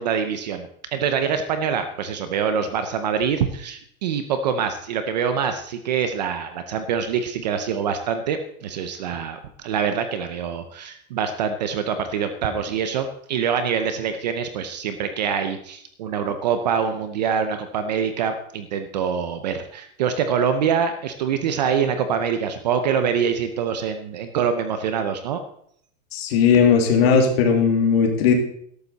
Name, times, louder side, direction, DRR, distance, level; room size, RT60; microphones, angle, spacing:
voice 1, 0.0-25.4, right 7 dB, 30° right, 9 dB, 0.6 m, -25 dB
voice 2, 26.1-28.3, left 6 dB, 45° left, 2 dB, 2.5 m, -17 dB
13.5 x 12.0 x 4.0 m, 0.67 s
supercardioid pair, 175°, 43 cm